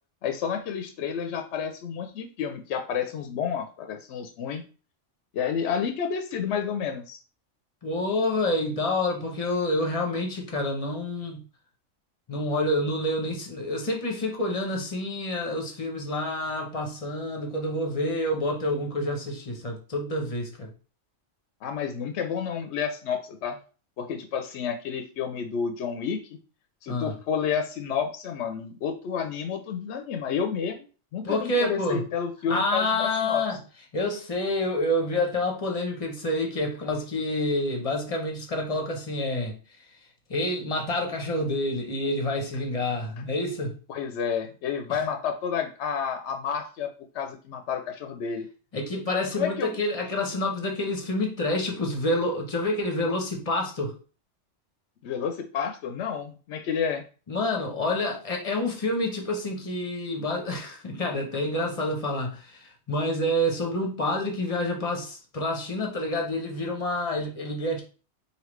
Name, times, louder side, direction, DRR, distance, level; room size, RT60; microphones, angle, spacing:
voice 1, 0.2-4.6 5.3-7.2 21.6-23.6 24.0-26.4 26.8-30.9 31.1-33.4 43.9-46.9 47.1-48.5 49.3-49.7 55.0-57.0, left 7 dB, 70° left, 5 dB, 0.8 m, -30 dB
voice 2, 7.8-11.4 12.3-20.7 26.9-27.1 31.2-32.0 32.5-33.6 33.9-39.6 40.3-43.7 44.9-45.0 48.7-53.9 57.3-67.8, left 1 dB, 35° left, 2 dB, 0.8 m, -28 dB
4.9 x 2.8 x 3.1 m, 0.37 s
omnidirectional pair, 1.2 m